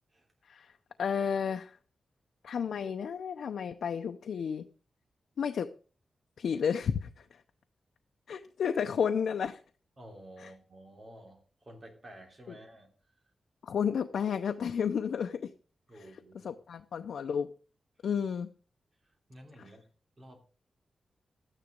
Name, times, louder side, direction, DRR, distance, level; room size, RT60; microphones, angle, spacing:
voice 1, 1.0-1.8 2.4-4.7 5.4-5.7 6.4-7.4 8.3-9.6 10.4-10.5 12.5-12.6 13.6-15.5 16.0-16.1 16.4-17.5 18.0-18.5 19.6-19.7, left 7 dB, 90° left, 7 dB, 0.7 m, -32 dB
voice 2, 10.0-12.9 15.9-16.5 19.0-19.8 20.2-20.4, right 1 dB, 30° right, 2 dB, 3.3 m, -52 dB
13.0 x 10.0 x 5.3 m, 0.38 s
wide cardioid pair, 160°, 0 cm